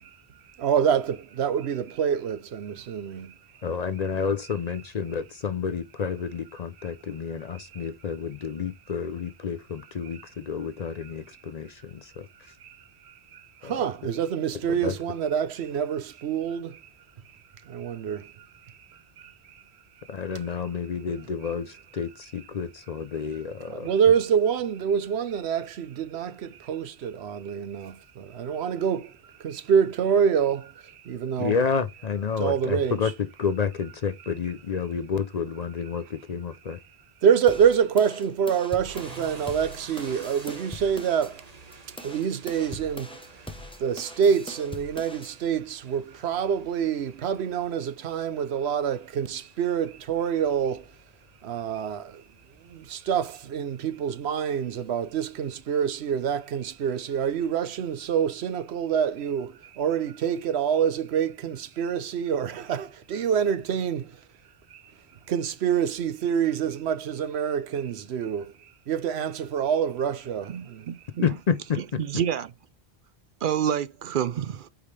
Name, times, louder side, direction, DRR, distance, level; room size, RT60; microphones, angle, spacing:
voice 1, 0.6-3.4 7.7-7.8 12.6-12.8 13.0-16.8 17.6-19.6 23.7-31.5 32.4-33.0 37.2-41.4 42.0-43.3 43.8-50.9 51.4-52.2 52.6-64.2 64.7-64.8 65.3-68.5 68.9-70.9, right 8 dB, 85° right, 1.0 m, -26 dB
voice 2, 3.6-12.5 13.6-13.9 14.6-14.9 20.1-23.9 31.4-36.8 71.2-72.0, left 6 dB, 50° left, 0.5 m, -30 dB
sound 1, 37.5-41.3 41.7-45.3, left 1 dB, 5° left, 0.8 m, -42 dB
sound 2, 38.9-58.2, right 4 dB, 40° right, 1.2 m, -51 dB
voice 3, 70.5-71.3 72.0-72.5 73.4-74.7, right 9 dB, 60° right, 0.6 m, -28 dB
8.5 x 4.8 x 3.3 m
omnidirectional pair, 1.1 m